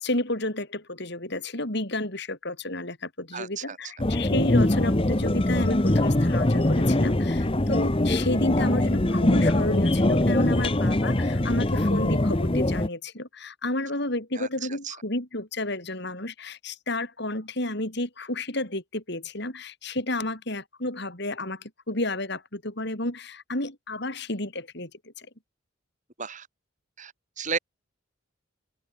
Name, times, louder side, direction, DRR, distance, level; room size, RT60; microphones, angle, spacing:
voice 1, 0.0-21.6 21.9-24.9, left 1 dB, 55° left, 5.7 m, -31 dB
voice 2, 3.3-3.8 14.4-14.5 14.8-15.0 26.2-26.5 27.0-27.1 27.4-27.6, right 5 dB, 35° right, 3.7 m, -32 dB
sound 1, 4.0-12.9, left 1 dB, 25° left, 1.0 m, -22 dB
head